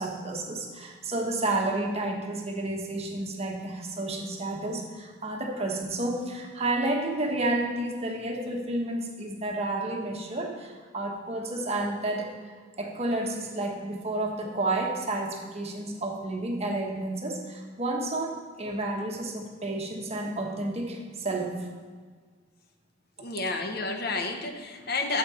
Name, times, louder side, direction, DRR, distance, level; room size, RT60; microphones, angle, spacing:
voice 1, 0.0-21.5, right 2 dB, 35° right, 1 dB, 1.4 m, -31 dB
voice 2, 23.2-25.2, left 3 dB, 55° left, 5 dB, 0.9 m, -30 dB
13.0 x 8.1 x 4.3 m, 1.5 s
head